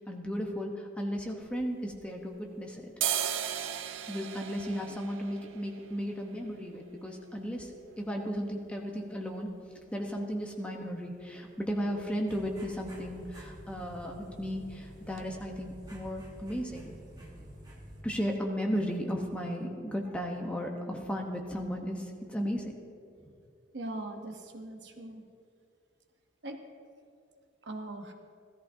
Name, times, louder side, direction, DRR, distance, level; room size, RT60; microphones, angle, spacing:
voice 1, 0.1-2.9 4.1-9.5 9.9-17.4 18.0-22.8 23.2-23.3, equal, 5° left, 0 dB, 1.0 m, -35 dB
sound 1, 1.4-2.5 2.8-10.5 10.8-10.9 11.2-11.8 12.1-12.3 12.6-12.8 13.1-13.8 14.1-14.3 14.8-14.9 15.2-15.3, right 9 dB, 85° right, 0.5 m, -39 dB
sound 2, 12.3-18.0, right 1 dB, 20° right, 1.4 m, -49 dB
voice 2, 23.7-25.2 26.4-26.6 27.7-28.1, right 2 dB, 65° right, 4 dB, 1.0 m, -40 dB
17.0 x 13.5 x 2.7 m, 2.4 s
head